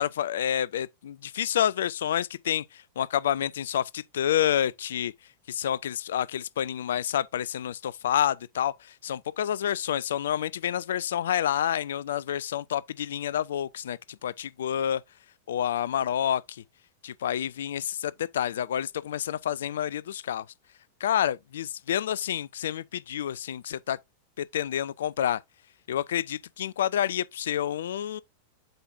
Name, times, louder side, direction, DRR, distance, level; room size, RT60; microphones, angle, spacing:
voice 1, 0.0-5.1 5.5-15.0 15.5-16.6 17.0-20.5 21.0-24.0 24.4-25.4 25.9-28.2, left 10 dB, 60° left, 0.3 m, -29 dB
7.8 x 5.2 x 2.5 m
figure-of-eight pair, 90°, 0 cm